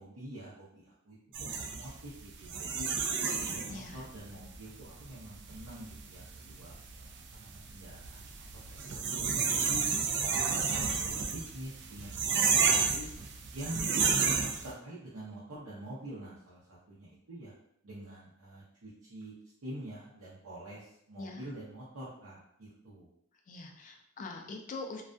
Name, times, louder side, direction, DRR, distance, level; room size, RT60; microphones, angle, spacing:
voice 1, 0.0-2.9 3.3-9.8 10.6-13.1 13.5-17.5 17.8-19.3 19.6-23.1, right 1 dB, 80° right, -9 dB, 0.7 m, -46 dB
sound 1, 1.3-14.7, right 5 dB, 55° right, 0.3 m, -32 dB
voice 2, 23.5-25.0, left 3 dB, 40° left, 3 dB, 0.3 m, -43 dB
2.3 x 2.2 x 2.4 m, 0.73 s
head